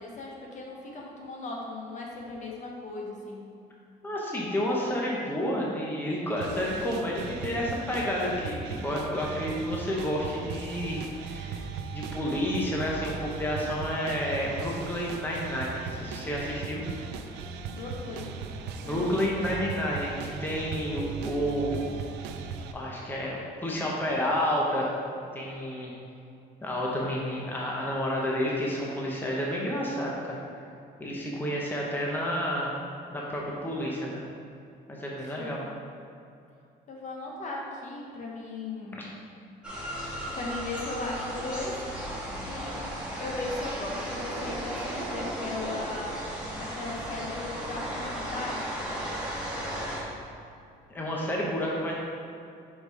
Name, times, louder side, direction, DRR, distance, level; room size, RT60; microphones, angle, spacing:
voice 1, 0.0-3.5 17.7-18.4 18.8-19.2 19.6-19.7 35.4-35.6 36.9-39.2 39.9-41.8 42.4-42.8 43.2-46.2 46.6-48.9, left 2 dB, 45° left, -2 dB, 1.1 m, -37 dB
voice 2, 4.0-11.6 11.9-16.8 18.7-21.8 22.7-24.9 25.3-25.9 26.6-30.4 31.0-32.7 33.1-34.2 34.9-35.6 38.9-39.1 50.9-51.9, equal, 10° left, -3 dB, 0.9 m, -30 dB
sound 1, 6.4-22.7, right 5 dB, 90° right, 0.4 m, -38 dB
sound 2, 39.6-50.0, equal, 5° right, 1.5 m, -35 dB
5.3 x 3.9 x 4.8 m, 2.5 s
cardioid pair, 110°, 17 cm